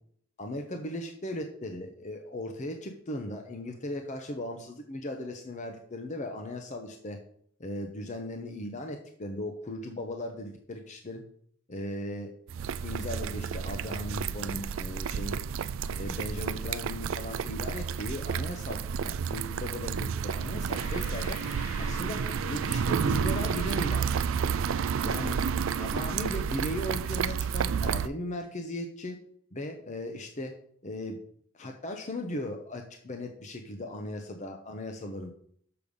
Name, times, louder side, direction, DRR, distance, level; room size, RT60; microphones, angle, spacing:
voice 1, 0.4-7.2 7.6-11.2 11.7-12.3 12.8-15.4 15.9-21.4 21.8-24.1 25.0-25.4 25.8-29.2 29.5-30.5 30.8-31.2 31.5-35.3, left 1 dB, 35° left, 4 dB, 0.8 m, -37 dB
sound 1, 12.5-28.1, right 7 dB, 70° right, 0.4 m, -31 dB
sound 2, 20.7-26.2, equal, 70° left, 4.4 m, -43 dB
6.9 x 6.5 x 5.3 m, 0.62 s
head